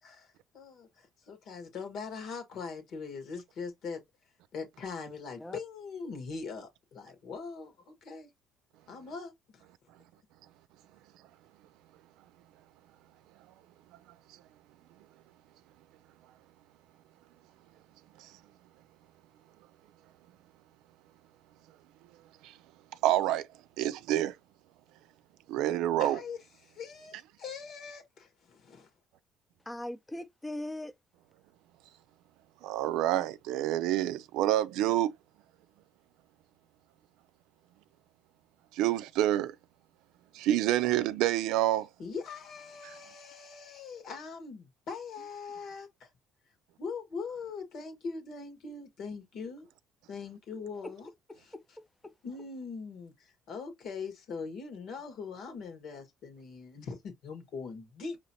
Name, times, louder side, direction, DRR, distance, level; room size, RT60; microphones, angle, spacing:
voice 1, 0.0-4.0 4.5-8.3 8.9-9.6 26.0-26.4 26.6-28.9 42.0-46.1 46.8-49.7 50.1-51.1 52.2-58.2, left 5 dB, 65° left, 1.4 m, -41 dB
voice 2, 23.0-23.5 23.8-24.3 25.5-26.2 32.6-35.1 38.7-39.5 40.3-41.9, right 13 dB, 80° right, 0.4 m, -27 dB
voice 3, 29.7-30.9 50.8-50.9 51.3-52.1, left 1 dB, 10° left, 0.6 m, -41 dB
5.1 x 3.0 x 2.7 m
supercardioid pair, 90°, 0 cm